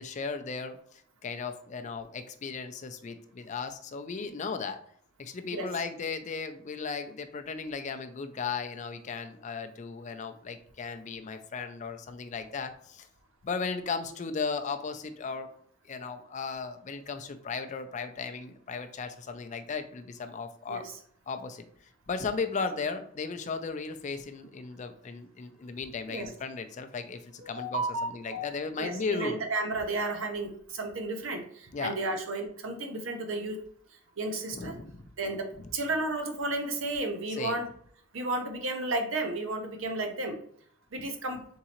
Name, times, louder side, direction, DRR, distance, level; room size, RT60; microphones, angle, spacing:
voice 1, 0.0-4.8 5.2-13.1 13.4-15.5 15.8-20.9 21.3-21.7 22.1-29.4 31.7-31.9 34.5-35.1 37.3-37.6, left 5 dB, 35° left, 8 dB, 0.4 m, -36 dB
voice 2, 27.4-28.5 28.8-33.6 34.2-34.8 35.2-35.5 35.7-37.7 38.1-40.4 40.9-41.4, right 2 dB, 65° right, 5 dB, 0.7 m, -32 dB
4.0 x 3.7 x 2.9 m, 0.62 s
head